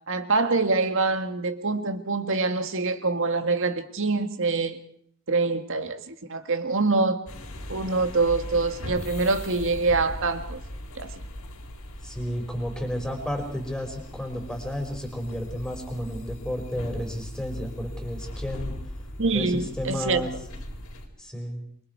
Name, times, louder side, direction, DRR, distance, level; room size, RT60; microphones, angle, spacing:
voice 1, 0.1-4.8 5.3-7.3 7.7-10.6 11.0-11.1 19.2-20.3, right 3 dB, 65° right, 1.8 m, -25 dB
sound 1, 7.3-21.1, equal, 85° left, 4.6 m, -39 dB
voice 2, 12.0-18.8 19.3-20.3 21.2-21.6, equal, 5° left, 5.1 m, -32 dB
28.0 x 23.5 x 4.7 m
head